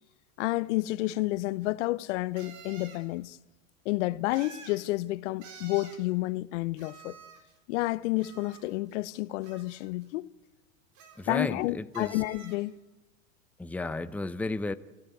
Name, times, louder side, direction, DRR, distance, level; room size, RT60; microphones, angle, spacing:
voice 1, 0.4-3.4 3.8-7.2 7.7-10.3 11.3-12.8, left 18 dB, 60° left, 0.8 m, -30 dB
sound 1, 1.0-1.1 2.4-3.0 4.3-4.8 5.4-6.0 6.8-7.6 8.2-9.0 9.4-10.0 10.9-11.6 11.9-12.6, right 5 dB, 50° right, 4.7 m, -50 dB
voice 2, 11.2-12.2 13.6-14.7, left 2 dB, 5° left, 0.8 m, -33 dB
29.5 x 13.5 x 9.3 m
hypercardioid pair, 95°, 40 cm